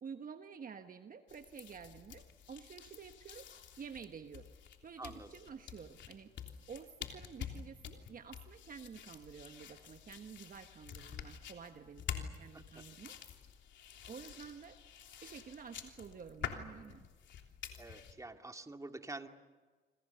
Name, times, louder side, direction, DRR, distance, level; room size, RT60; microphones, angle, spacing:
voice 1, 0.0-3.5 3.8-4.5 4.8-6.3 6.7-13.2 14.1-14.8 15.2-17.1, right 6 dB, 45° right, 7 dB, 1.3 m, -50 dB
sound 1, 1.3-18.1, left 8 dB, 65° left, 3.3 m, -48 dB
voice 2, 5.0-5.3 12.5-12.6 17.8-19.3, right 2 dB, 15° right, 5 dB, 2.2 m, -47 dB
28.5 x 25.0 x 6.9 m, 1.4 s
cardioid pair, 85°, 20 cm